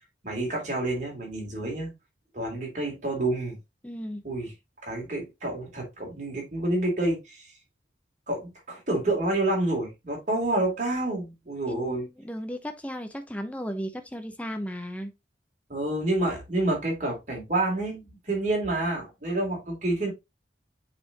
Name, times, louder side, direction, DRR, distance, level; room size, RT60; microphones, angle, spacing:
voice 1, 0.2-1.9 2.3-3.6 4.2-4.5 4.8-7.4 8.3-12.0 15.7-20.1, right 2 dB, 40° right, 3.1 m, -28 dB
voice 2, 3.8-4.2 11.7-15.1, equal, 10° left, 0.7 m, -35 dB
8.2 x 4.3 x 2.9 m
head